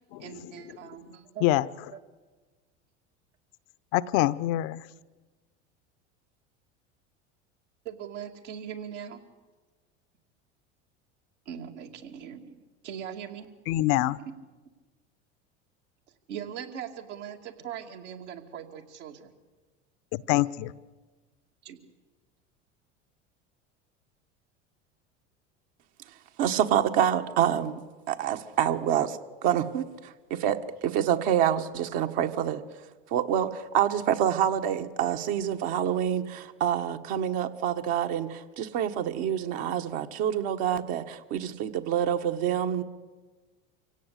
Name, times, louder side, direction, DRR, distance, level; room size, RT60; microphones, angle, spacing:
voice 1, 0.2-1.4 1.9-2.0 7.8-9.2 11.5-13.5 14.2-14.3 16.3-19.3 21.6-21.8, right 9 dB, 80° right, 2 dB, 2.6 m, -40 dB
voice 2, 3.9-4.9 13.7-14.2 20.1-20.7, left 16 dB, 60° left, 16 dB, 0.8 m, -25 dB
voice 3, 26.4-27.8 28.1-32.6 33.1-42.8, right 10 dB, 65° right, 6 dB, 1.6 m, -27 dB
25.0 x 17.0 x 8.3 m, 1.3 s
hypercardioid pair, 85°, 35 cm